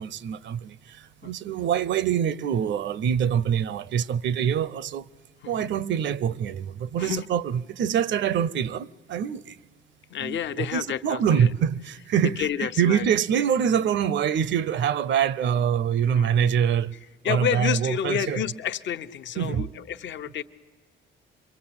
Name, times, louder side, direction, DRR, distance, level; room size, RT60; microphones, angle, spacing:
voice 1, 0.0-5.1 5.5-9.6 10.2-16.9 17.2-18.4 19.4-19.7, right 8 dB, 65° right, 0.7 m, -25 dB
voice 2, 10.1-11.5 12.4-13.1 16.0-16.3 17.2-20.4, left 9 dB, 65° left, 1.0 m, -30 dB
26.0 x 22.5 x 8.8 m
cardioid pair, 90°, 20 cm